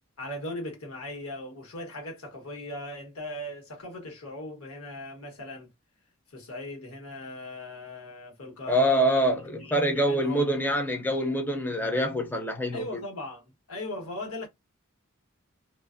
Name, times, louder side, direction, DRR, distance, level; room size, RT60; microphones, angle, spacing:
voice 1, 0.2-5.7 6.3-10.5 12.7-14.5, left 1 dB, 85° left, 1.2 m, -39 dB
voice 2, 8.7-13.0, equal, 10° left, 0.4 m, -25 dB
2.4 x 2.4 x 2.4 m
head